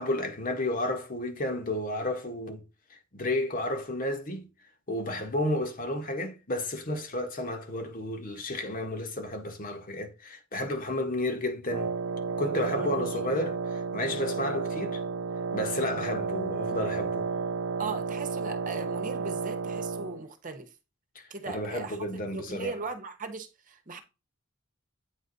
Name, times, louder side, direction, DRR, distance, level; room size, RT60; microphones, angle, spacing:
voice 1, 0.0-2.6 2.9-4.5 4.9-11.9 12.4-15.0 15.5-17.2 21.1-22.8, left 1 dB, 40° left, 1.5 m, -32 dB
Wind instrument woodwind instrument, 11.7-20.2, right 4 dB, 75° right, 0.5 m, -32 dB
voice 2, 12.6-13.1 17.8-20.7 21.3-22.1 22.3-24.0, right 4 dB, 40° right, 1.2 m, -38 dB
8.9 x 4.1 x 4.0 m
head